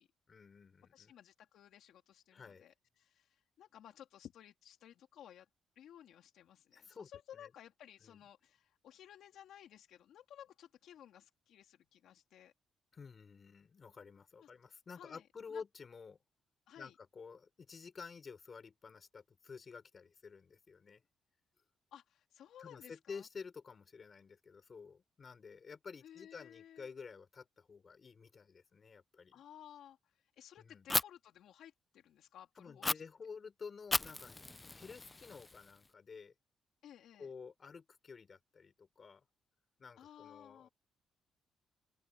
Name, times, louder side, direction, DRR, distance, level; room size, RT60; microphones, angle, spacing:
voice 1, 0.3-1.1 2.3-2.6 6.7-7.5 8.0-8.2 12.9-16.2 16.8-21.0 22.6-29.4 30.6-30.9 32.6-34.4 34.7-36.3 37.2-39.2 39.8-40.7, left 5 dB, 35° left, 4.5 m, -51 dB
voice 2, 0.9-5.5 5.7-12.5 14.4-14.5 14.9-15.6 16.7-16.9 21.9-23.3 26.0-26.9 29.3-33.1 36.8-37.3 40.0-40.7, left 10 dB, 75° left, 3.0 m, -57 dB
Fire, 30.9-31.0 32.8-32.9 33.9-35.9, left 2 dB, 15° left, 0.3 m, -36 dB
open air
cardioid pair, 150°, 0 cm